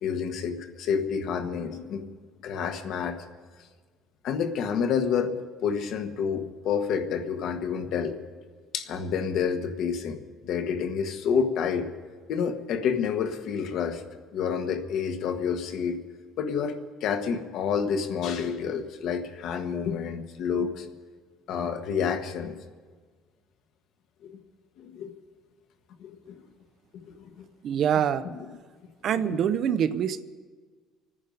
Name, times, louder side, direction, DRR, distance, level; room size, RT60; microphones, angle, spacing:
voice 1, 0.0-2.1 2.4-3.2 4.2-5.3 5.6-8.1 8.7-11.9 12.3-14.0 14.3-16.0 16.4-20.9 21.5-22.5 24.2-24.4 24.8-25.1 26.0-26.4 27.1-27.5 28.2-28.4 29.1-29.4, left 6 dB, 55° left, 7 dB, 1.2 m, -29 dB
voice 2, 27.6-28.3 29.0-30.2, right 8 dB, 45° right, 13 dB, 0.5 m, -25 dB
26.5 x 9.8 x 5.3 m, 1.5 s
cardioid pair, 165°, 0 cm